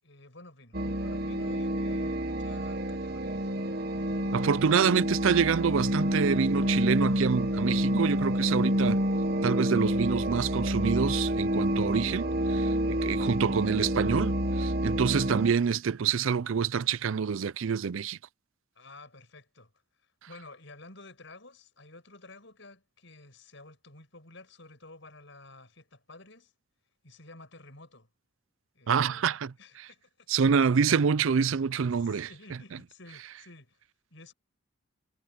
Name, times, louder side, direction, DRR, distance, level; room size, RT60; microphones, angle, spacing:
voice 1, 0.0-3.5 4.0-4.8 18.7-19.7 20.3-26.5 27.0-28.1 28.7-30.3 31.9-33.8 34.1-34.3, left 2 dB, 60° left, 6.9 m, -52 dB
sound 1, 0.7-15.5, equal, 50° right, 1.4 m, -28 dB
voice 2, 4.3-9.0 9.4-18.2 28.9-29.9 30.3-32.3, right 6 dB, 70° right, 0.4 m, -27 dB
head